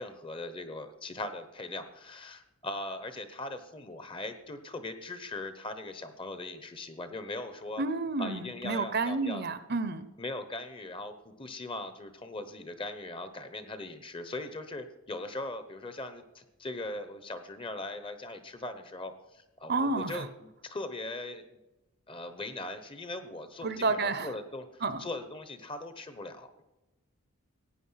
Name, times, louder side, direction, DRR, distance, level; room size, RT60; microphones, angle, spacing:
voice 1, 0.0-7.8 8.2-9.4 10.2-21.4 22.1-26.6, left 2 dB, 25° left, 10 dB, 0.9 m, -40 dB
voice 2, 7.8-10.1 19.7-20.3 23.6-24.3 24.8-25.0, right 3 dB, 45° right, 13 dB, 0.8 m, -30 dB
15.5 x 9.3 x 5.7 m, 1.0 s
head